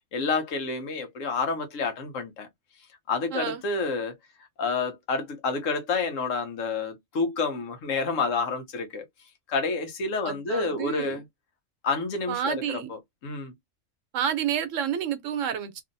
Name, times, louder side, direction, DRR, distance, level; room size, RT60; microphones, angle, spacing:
voice 1, 0.1-2.5 3.1-4.2 4.6-9.0 9.5-11.2 11.8-13.5, left 4 dB, 80° left, 1.2 m, -29 dB
voice 2, 3.3-3.6 10.2-11.2 12.3-12.9 14.1-15.8, right 9 dB, 80° right, 1.0 m, -29 dB
2.7 x 2.5 x 2.6 m
omnidirectional pair, 1.3 m